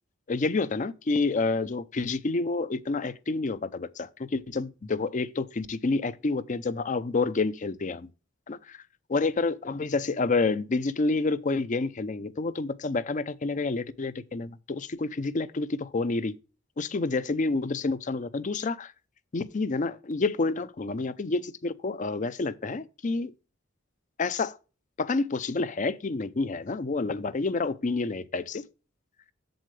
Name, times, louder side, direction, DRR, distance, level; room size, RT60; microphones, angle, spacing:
voice 1, 0.3-8.1 8.5-8.6 9.1-16.4 16.8-18.9 19.3-23.3 24.2-24.6 25.0-28.6, left 3 dB, 40° left, 0.5 m, -28 dB
7.9 x 7.6 x 3.2 m
head